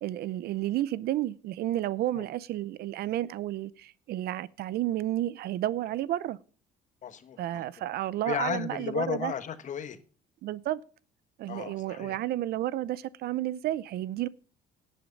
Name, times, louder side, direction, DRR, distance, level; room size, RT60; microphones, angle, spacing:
voice 1, 0.0-6.4 7.4-9.3 10.4-10.8 11.4-14.3, right 14 dB, 70° right, 0.6 m, -31 dB
voice 2, 7.0-7.6 8.2-10.0 11.5-12.2, left 8 dB, 45° left, 1.3 m, -34 dB
11.0 x 9.4 x 5.3 m
cardioid pair, 110°, 17 cm